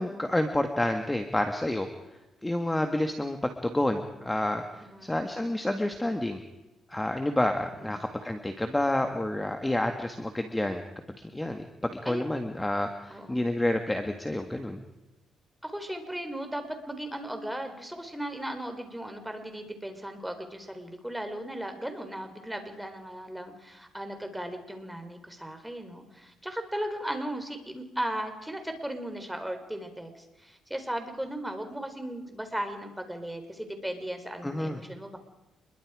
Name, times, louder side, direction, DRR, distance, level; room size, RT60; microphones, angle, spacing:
voice 1, 0.0-1.9 2.4-4.6 5.0-6.4 6.9-10.8 11.3-14.8 34.4-34.8, left 1 dB, 10° left, 6 dB, 1.8 m, -29 dB
voice 2, 4.8-5.1 7.8-8.1 12.0-12.2 13.1-13.4 15.6-35.2, right 1 dB, 5° right, 6 dB, 4.0 m, -37 dB
27.0 x 22.0 x 5.0 m, 1.0 s
cardioid pair, 90°, 0 cm